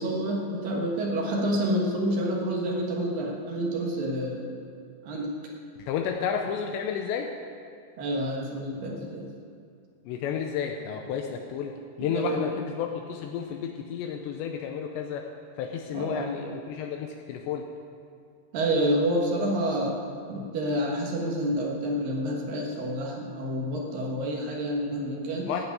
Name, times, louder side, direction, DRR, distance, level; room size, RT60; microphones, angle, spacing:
voice 1, 0.0-4.6 5.0-5.3 8.0-9.3 12.0-12.5 15.9-16.3 18.5-20.0 20.3-25.5, right 1 dB, 65° right, -1 dB, 2.3 m, -28 dB
voice 2, 5.8-7.3 10.1-11.7 12.0-15.3 15.6-17.6 25.5-25.6, left 7 dB, 90° left, 3 dB, 2.5 m, -31 dB
15.5 x 6.0 x 8.9 m, 2.4 s
omnidirectional pair, 5.9 m